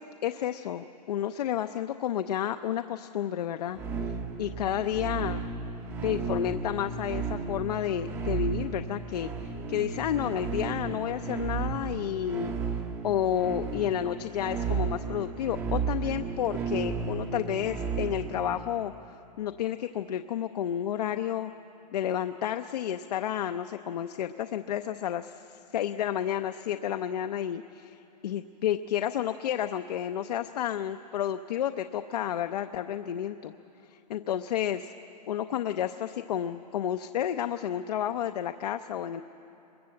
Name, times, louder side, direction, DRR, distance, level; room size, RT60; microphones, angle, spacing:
voice 1, 0.0-5.4 6.0-12.5 13.0-21.5 21.9-33.5 33.9-34.9 35.3-39.2, left 10 dB, 70° left, 8 dB, 0.7 m, -31 dB
sound 1, 3.7-18.6, right 5 dB, 10° right, 0.6 m, -34 dB
22.5 x 22.0 x 7.7 m, 3.0 s
hypercardioid pair, 175°, 21 cm